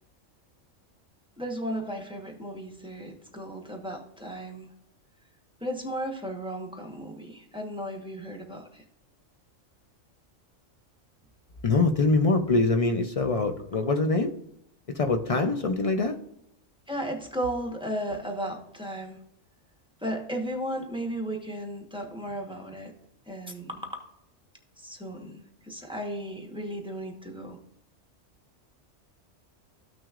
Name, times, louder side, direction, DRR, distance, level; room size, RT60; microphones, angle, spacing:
voice 1, 1.4-4.7 5.6-8.8 16.9-19.2 20.0-22.9 23.3-23.9 24.8-27.6, right 1 dB, 5° right, 1 dB, 0.9 m, -35 dB
voice 2, 11.6-14.3 14.9-16.2, left 3 dB, 60° left, 5 dB, 0.3 m, -24 dB
14.0 x 5.9 x 2.4 m, 0.77 s
omnidirectional pair, 1.3 m